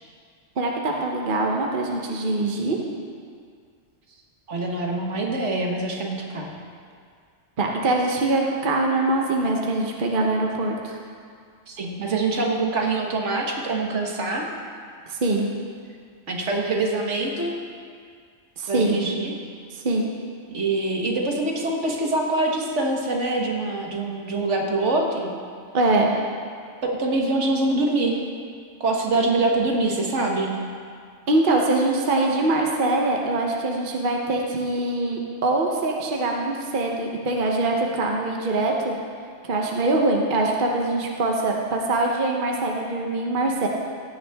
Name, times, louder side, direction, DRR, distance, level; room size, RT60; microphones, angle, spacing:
voice 1, 0.6-2.8 7.6-11.0 15.1-15.5 18.6-19.0 19.7-20.1 25.7-26.1 31.3-39.0 39.4-43.7, right 2 dB, 45° right, 0 dB, 1.1 m, -23 dB
voice 2, 4.5-6.5 11.7-14.5 16.3-17.5 18.7-19.3 20.5-25.4 26.8-28.2 28.8-30.6, right 2 dB, 65° right, 0 dB, 1.6 m, -24 dB
16.0 x 9.4 x 3.5 m, 2.1 s
omnidirectional pair, 1.3 m